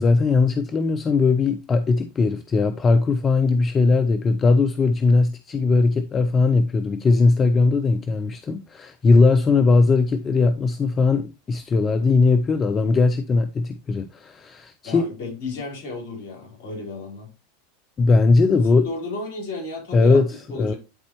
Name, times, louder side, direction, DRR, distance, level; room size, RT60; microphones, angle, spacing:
voice 1, 0.0-15.0 18.0-18.9 19.9-20.3 20.6-20.7, left 3 dB, 25° left, 0.5 m, -19 dB
voice 2, 14.8-17.3 18.8-20.2 20.5-20.8, left 2 dB, 60° left, 3.9 m, -33 dB
11.0 x 4.2 x 3.0 m
hypercardioid pair, 90°, 0 cm